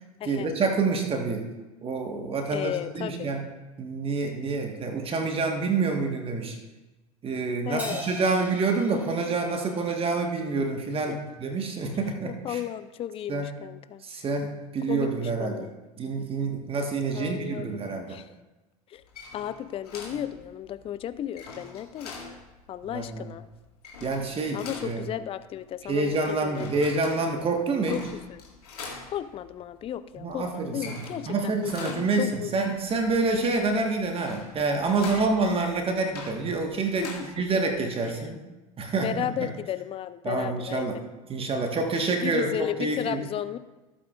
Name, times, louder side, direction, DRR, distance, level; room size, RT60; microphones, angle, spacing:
voice 1, 0.2-1.5 1.8-3.4 3.8-6.6 7.2-12.6 13.3-13.6 14.1-15.7 16.0-18.2 22.9-23.3 24.0-25.1 25.9-28.0 30.2-38.4 38.8-39.5 40.2-41.0 41.3-43.2, right 3 dB, 30° right, 3 dB, 1.5 m, -27 dB
voice 2, 2.5-3.3 7.7-8.0 11.1-11.2 11.9-14.0 14.9-15.8 17.1-17.8 18.1-18.3 18.9-19.0 19.3-22.4 22.7-23.4 24.5-26.8 27.9-28.0 28.3-28.4 29.1-32.5 35.2-35.3 37.0-37.3 37.7-37.8 39.0-40.9 42.2-43.6, left 11 dB, 30° left, 14 dB, 0.5 m, -34 dB
Crash cymbal, 7.8-10.5, right 1 dB, 10° right, 2.2 m, -41 dB
sound 1, 19.0-37.9, left 4 dB, 75° left, 2.0 m, -45 dB
15.5 x 8.5 x 2.5 m, 1.1 s
figure-of-eight pair, 75°, 20 cm